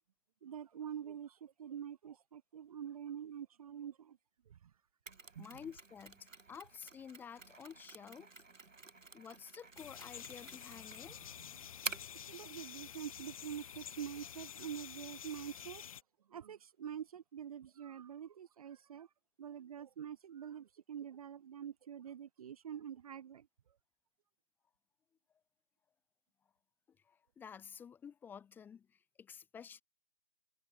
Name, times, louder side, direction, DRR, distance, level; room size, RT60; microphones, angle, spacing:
voice 1, 0.4-4.2 4.5-4.6 5.3-5.5 11.2-11.3 11.5-11.7 12.2-15.9 16.3-19.1 19.4-23.5, right 9 dB, 30° right, 1.6 m, -46 dB
Mechanisms, 5.1-12.2, right 3 dB, 80° right, 4.0 m, -49 dB
voice 2, 5.4-8.3 9.1-11.2 26.9-29.8, left 7 dB, 5° left, 1.8 m, -51 dB
sound 1, 9.8-16.0, left 9 dB, 25° left, 1.4 m, -50 dB
figure-of-eight pair, 155°, 38 cm